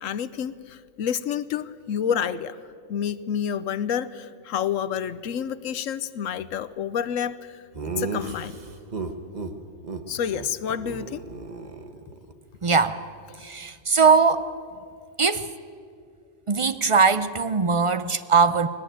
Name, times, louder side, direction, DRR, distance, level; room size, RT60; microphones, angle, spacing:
voice 1, 0.0-2.6 2.9-8.6 10.1-11.2, left 8 dB, 75° left, 16 dB, 1.1 m, -29 dB
Laughter, 7.7-9.5 9.8-10.0 10.3-10.5 10.7-12.3, right 4 dB, 35° right, 1.2 m, -34 dB
voice 2, 12.6-13.0 13.4-14.5 15.2-15.5 16.5-18.7, right 5 dB, 50° right, 12 dB, 0.3 m, -20 dB
20.5 x 18.5 x 9.2 m, 2.3 s
omnidirectional pair, 1.4 m